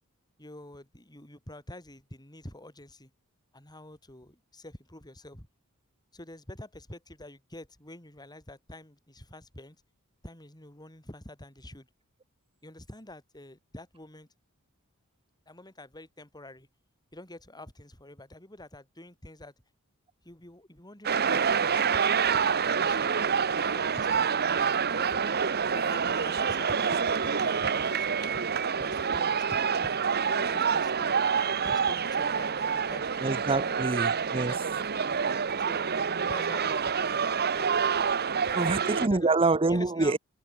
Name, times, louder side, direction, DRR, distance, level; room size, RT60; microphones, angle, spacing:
voice 1, 0.4-3.1 3.5-5.5 6.1-9.8 10.2-11.9 12.6-14.3 15.5-16.7 17.1-19.5 20.2-23.1 23.5-25.2 25.7-28.4 28.8-31.1 31.6-33.1 33.5-33.8 34.3-34.9 35.6-37.8 38.3-39.3 39.7-40.2, left 1 dB, 20° left, 6.4 m, -47 dB
sound 1, 21.0-39.1, right 6 dB, 45° right, 1.1 m, -27 dB
voice 2, 33.2-34.5 38.5-40.2, right 3 dB, 25° right, 0.8 m, -26 dB
head